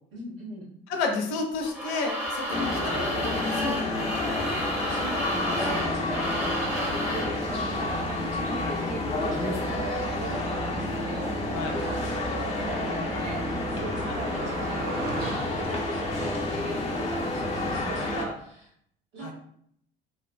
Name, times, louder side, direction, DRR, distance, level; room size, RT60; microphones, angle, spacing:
voice 1, 0.1-0.7 2.5-2.8 4.9-18.7 19.1-19.3, right 1 dB, 70° right, -7 dB, 1.4 m, -39 dB
voice 2, 0.9-4.0 11.5-11.7 14.1-14.2 19.2-19.3, left 4 dB, 60° left, 2 dB, 0.6 m, -31 dB
sound 1, 1.6-7.4, equal, 5° right, 0.9 m, -32 dB
sound 2, 2.5-18.3, left 2 dB, 20° left, 0.7 m, -30 dB
Car passing by, 5.2-15.3, right 4 dB, 30° right, 0.6 m, -40 dB
3.1 x 2.1 x 2.3 m, 0.68 s
figure-of-eight pair, 55°, 30 cm